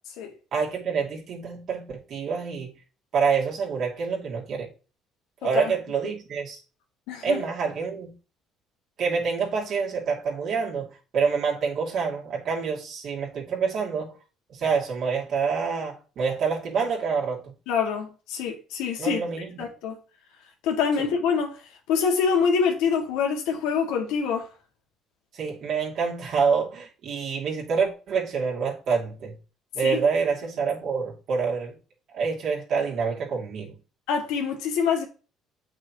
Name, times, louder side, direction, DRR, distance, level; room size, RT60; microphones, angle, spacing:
voice 1, 0.5-2.7 3.1-4.7 5.4-6.6 7.2-8.2 9.0-14.1 14.5-17.5 19.0-19.6 21.0-21.1 25.3-29.4 29.7-31.7 32.1-33.8, right 5 dB, 55° right, 2.8 m, -27 dB
voice 2, 5.4-5.7 7.1-7.4 17.7-19.2 19.6-20.0 20.6-21.5 21.9-24.5 29.8-30.0 34.1-35.1, left 6 dB, 90° left, 2.2 m, -25 dB
7.9 x 6.1 x 3.1 m
cardioid pair, 110°, 0 cm